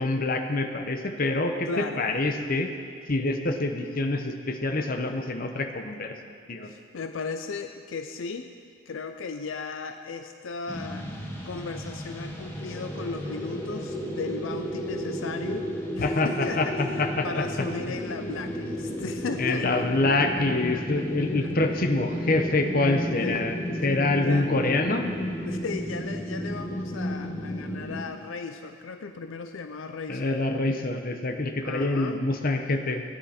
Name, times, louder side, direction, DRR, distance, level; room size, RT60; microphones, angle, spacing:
voice 1, 0.0-2.7 3.1-6.1 6.5-6.7 16.0-17.4 17.9-18.0 19.4-25.1 30.1-33.0, left 2 dB, 45° left, 5 dB, 0.9 m, -26 dB
voice 2, 1.7-2.0 6.6-8.5 8.9-15.7 15.9-19.9 20.7-20.8 21.2-21.5 23.2-23.4 24.2-24.5 25.5-30.3 31.6-32.2, left 4 dB, 75° left, 7 dB, 0.5 m, -36 dB
Dark Atmosphere, 10.7-28.0, equal, 10° left, 1.3 m, -33 dB
16.5 x 10.0 x 4.3 m, 2.1 s
head